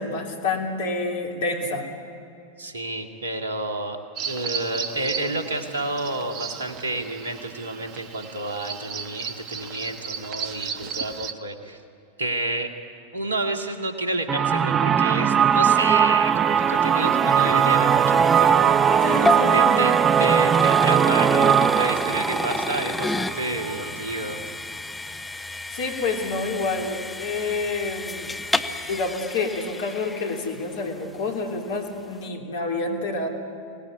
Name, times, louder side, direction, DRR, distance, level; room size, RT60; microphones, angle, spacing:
voice 1, 0.0-1.9 19.0-19.9 25.7-28.3 28.8-33.3, left 3 dB, 55° left, 1 dB, 3.3 m, -28 dB
voice 2, 2.6-4.0 4.2-11.8 12.2-12.7 13.1-19.1 19.5-19.9 20.2-24.4, right 2 dB, 70° right, 5 dB, 2.1 m, -30 dB
Bird vocalization bird call bird song, 4.2-11.3, right 7 dB, 40° right, 1.2 m, -35 dB
sound 1, 14.3-24.0, right 8 dB, 20° right, 0.5 m, -20 dB
sound 2, 15.8-31.0, left 2 dB, 5° left, 0.9 m, -32 dB
25.0 x 18.5 x 9.5 m, 2.6 s
figure-of-eight pair, 90°, 0 cm